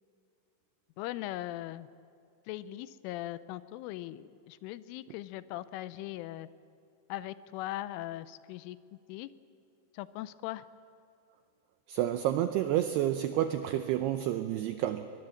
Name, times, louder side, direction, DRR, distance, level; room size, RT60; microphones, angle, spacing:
voice 1, 1.0-1.9 2.5-6.5 7.1-9.3 9.9-10.7, left 15 dB, 85° left, 15 dB, 3.2 m, -40 dB
voice 2, 11.9-15.1, right 12 dB, 90° right, 8 dB, 2.3 m, -30 dB
23.0 x 20.5 x 7.8 m, 2.5 s
omnidirectional pair, 5.6 m